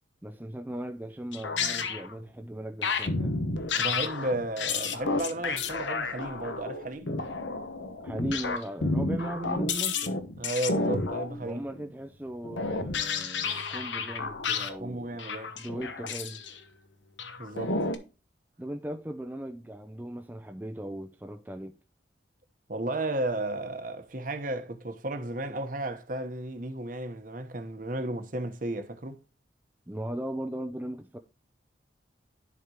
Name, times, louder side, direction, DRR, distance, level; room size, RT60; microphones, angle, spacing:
voice 1, 0.2-3.4 8.0-10.1 11.4-15.2 15.6-16.4 18.6-21.8 29.9-31.2, right 1 dB, 10° right, 0.5 m, -38 dB
sound 1, 1.3-2.1 2.8-11.8 12.4-14.8 15.1-16.6 17.2-18.0, left 4 dB, 90° left, 1.1 m, -31 dB
voice 2, 3.7-7.1 10.4-11.6 14.8-15.5 17.4-17.8 22.7-29.2, right 2 dB, 45° right, 1.1 m, -33 dB
11.0 x 5.2 x 2.9 m
head